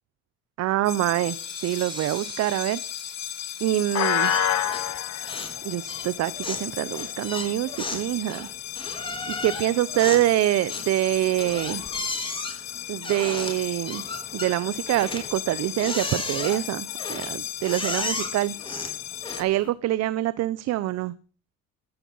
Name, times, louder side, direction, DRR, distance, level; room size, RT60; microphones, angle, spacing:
voice 1, 0.6-1.4 1.6-2.8 3.6-4.3 5.6-8.5 9.3-11.8 12.9-14.0 14.3-18.5 19.4-21.1, right 15 dB, 55° right, 17 dB, 0.7 m, -25 dB
sound 1, 0.8-19.4, left 11 dB, 55° left, 2.1 m, -33 dB
sound 2, 1.1-6.4, right 3 dB, 15° right, 4.2 m, -46 dB
sound 3, 4.2-5.0 5.2-5.6 5.9-19.7, left 3 dB, 15° left, 4.1 m, -35 dB
15.0 x 13.5 x 5.5 m, 0.38 s
cardioid pair, 125°, 32 cm